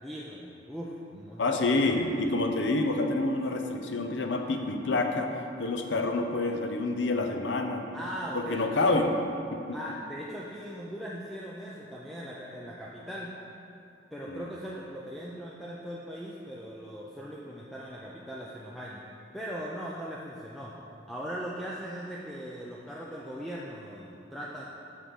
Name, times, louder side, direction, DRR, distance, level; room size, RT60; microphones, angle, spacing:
voice 1, 0.0-2.1 7.9-8.7 9.7-13.4 14.1-19.0 19.3-20.8 21.1-24.7, equal, ahead, -5 dB, 0.5 m, -39 dB
voice 2, 1.4-5.3 5.6-7.8 8.3-9.2 9.5-9.8 14.3-14.5, left 2 dB, 75° left, 4 dB, 0.7 m, -28 dB
6.5 x 5.3 x 6.3 m, 2.7 s
head